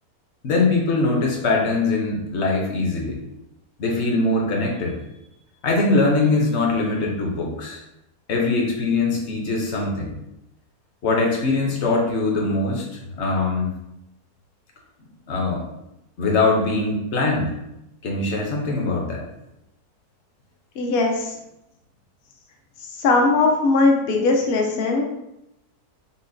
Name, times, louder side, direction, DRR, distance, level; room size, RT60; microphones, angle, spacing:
voice 1, 0.4-3.2 3.8-5.0 5.6-7.8 8.3-10.2 11.0-13.7 15.3-15.6 16.2-17.6 18.0-19.2, left 3 dB, 55° left, -1 dB, 0.9 m, -22 dB
voice 2, 20.8-21.4 22.8-25.1, left 3 dB, 75° left, 1 dB, 0.5 m, -19 dB
5.6 x 2.1 x 2.6 m, 0.86 s
omnidirectional pair, 1.7 m